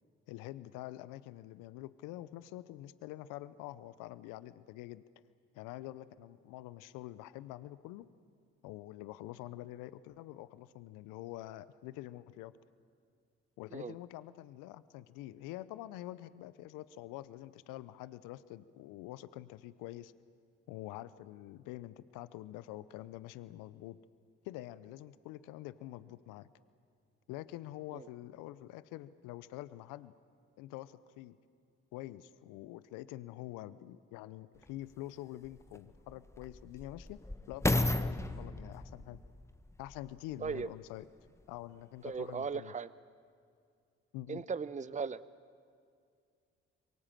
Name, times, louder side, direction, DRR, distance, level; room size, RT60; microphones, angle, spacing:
voice 1, 0.3-5.0 5.5-8.1 8.6-12.5 13.6-20.1 20.7-24.0 24.4-26.5 27.3-30.1 30.6-31.4 31.9-37.2 37.5-39.2 39.8-41.1 41.5-42.7 44.1-44.4, left 15 dB, 75° left, 17 dB, 0.8 m, -46 dB
sound 1, 34.6-34.7 35.4-40.7 41.4-41.5, left 1 dB, 10° left, 1.2 m, -35 dB
voice 2, 42.0-42.9 44.3-45.2, right 5 dB, 25° right, 16 dB, 0.8 m, -37 dB
27.0 x 23.5 x 7.5 m, 2.2 s
hypercardioid pair, 45°, 32 cm